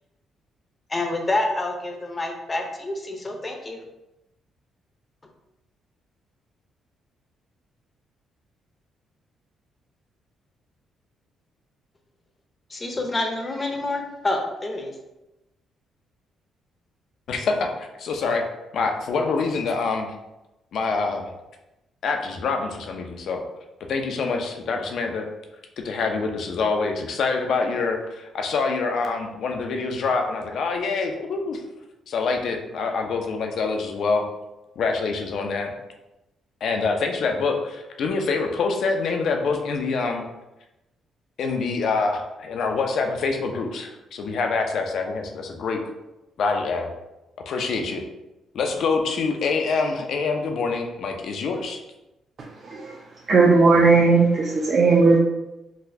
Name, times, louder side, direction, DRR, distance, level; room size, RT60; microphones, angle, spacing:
voice 1, 0.9-3.8 12.7-14.9, left 2 dB, 25° left, 2 dB, 0.6 m, -27 dB
voice 2, 17.3-18.4 18.7-20.1 20.7-21.3 22.0-23.4 23.9-25.3 25.8-31.6 32.1-34.2 34.8-35.7 36.6-40.2 41.4-45.8 46.4-46.9 47.5-48.0 48.5-51.8, left 4 dB, 65° left, 3 dB, 0.5 m, -25 dB
voice 3, 53.3-55.2, right 4 dB, 45° right, -2 dB, 0.4 m, -16 dB
4.0 x 2.3 x 2.7 m, 0.96 s
cardioid pair, 90°, 0 cm